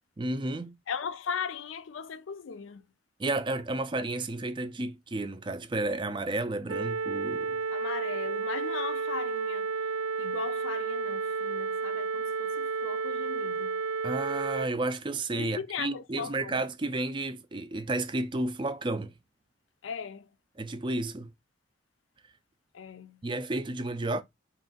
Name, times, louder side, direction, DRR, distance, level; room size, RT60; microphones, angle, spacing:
voice 1, 0.2-0.8 3.2-7.6 14.0-19.1 20.6-21.3 23.2-24.2, right 2 dB, 25° right, 0.4 m, -32 dB
voice 2, 0.9-2.8 7.7-9.7 10.2-13.8 15.3-16.6 19.8-20.3 22.7-23.2, left 6 dB, 75° left, 0.5 m, -38 dB
sound 1, 6.7-14.7, right 5 dB, 90° right, 0.4 m, -31 dB
4.1 x 2.5 x 3.8 m
head